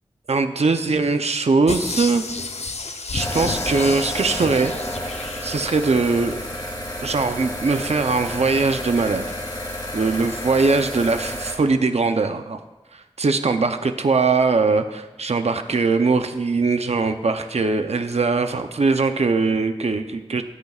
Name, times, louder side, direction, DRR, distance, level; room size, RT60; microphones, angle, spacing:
voice 1, 0.3-2.3 2.9-4.8 5.4-6.4 7.0-9.3 9.9-12.6 12.9-20.4, right 4 dB, 80° right, 8 dB, 0.6 m, -21 dB
sound 1, 1.7-6.1 6.5-6.6, left 3 dB, 80° left, 0.8 m, -31 dB
sound 2, 3.2-11.5, left 1 dB, 35° left, 3.9 m, -31 dB
23.5 x 8.2 x 2.4 m, 1.1 s
wide cardioid pair, 50°, 11 cm